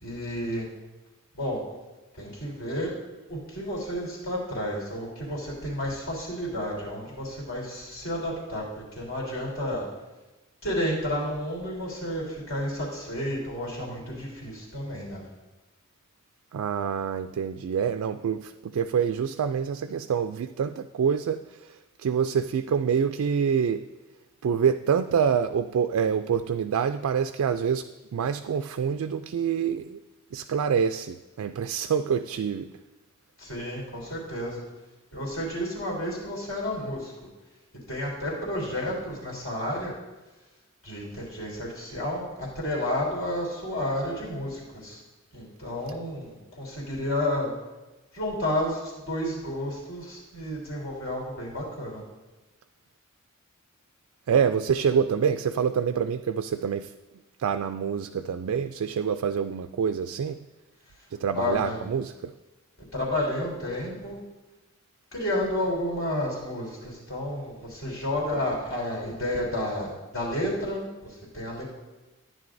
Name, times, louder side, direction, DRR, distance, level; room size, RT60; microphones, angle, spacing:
voice 1, 0.0-0.7 1.3-1.6 2.2-2.9 3.3-9.9 10.6-15.2 33.4-34.6 35.1-37.1 37.9-39.9 40.8-45.0 45.3-47.5 48.1-52.0 61.3-61.8 62.9-64.2 65.1-71.6, left 1 dB, 65° left, -3 dB, 3.4 m, -31 dB
voice 2, 16.5-23.8 24.4-27.9 28.1-30.0 30.3-32.7 54.3-56.9 57.4-60.4 61.1-62.3, right 7 dB, 80° right, 9 dB, 0.3 m, -26 dB
14.0 x 9.7 x 2.6 m, 1.1 s
head